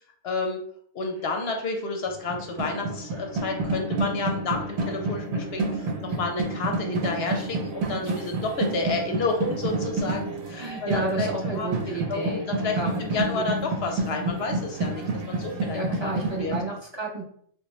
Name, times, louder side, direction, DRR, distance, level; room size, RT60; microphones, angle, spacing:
voice 1, 0.2-0.6 0.9-11.7 12.1-16.1 16.4-16.5, left 3 dB, 60° left, 3 dB, 0.7 m, -30 dB
sound 1, 2.1-16.6, right 2 dB, 80° right, 1.1 m, -29 dB
voice 2, 10.6-13.5 15.7-17.2, right 2 dB, 30° right, -4 dB, 0.6 m, -32 dB
3.4 x 3.0 x 3.1 m, 0.62 s
omnidirectional pair, 1.5 m